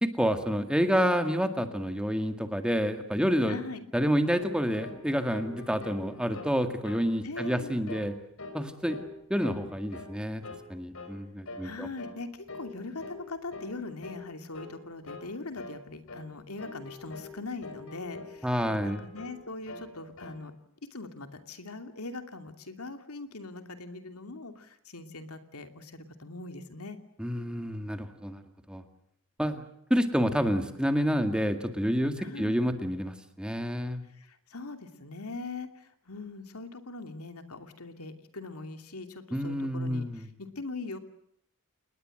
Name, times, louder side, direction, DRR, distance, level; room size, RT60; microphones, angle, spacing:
voice 1, 0.0-3.6 3.9-8.1 8.5-9.0 9.3-10.4 10.7-11.9 18.4-19.0 27.2-28.4 28.7-28.8 29.4-29.6 29.9-34.0 39.3-40.2, equal, 5° right, 7 dB, 2.0 m, -28 dB
voice 2, 3.5-3.9 7.2-7.8 11.6-20.5 20.9-27.0 32.2-32.6 34.1-41.0, left 3 dB, 85° left, 8 dB, 2.8 m, -41 dB
sound 1, 4.3-4.5 4.8-5.0 5.3-6.5 6.8-7.1 7.3-7.6 7.9-8.1 8.4-9.1 9.4-10.2 10.4-10.7 10.9-11.2 11.5-11.7 12.0-12.2 12.5-12.7 13.0-13.2 13.5-13.7 14.0-14.3 14.5-14.7 15.1-15.3 15.6-15.8 16.1-16.3 16.6-17.3 17.6-18.4 18.6-19.4 19.7-20.4, left 3 dB, 65° left, 4.4 m, -43 dB
29.0 x 20.0 x 7.8 m, 0.69 s
head